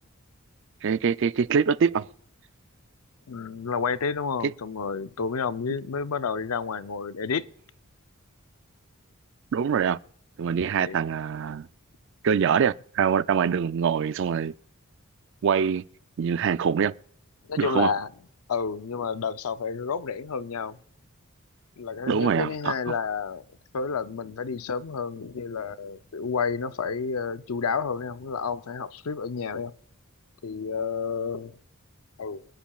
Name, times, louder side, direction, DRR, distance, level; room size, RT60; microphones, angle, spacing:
voice 1, 0.8-2.1 4.4-4.5 9.5-10.0 10.4-11.7 12.2-14.5 15.4-15.8 16.2-16.9 17.6-17.9 22.1-22.9, right 6 dB, 55° right, 0.4 m, -24 dB
voice 2, 3.3-7.5 10.8-11.0 17.5-18.1 18.5-20.8 21.8-23.4 23.7-29.7 30.4-31.6 32.2-32.4, left 5 dB, 80° left, 0.5 m, -30 dB
25.5 x 10.5 x 2.3 m
head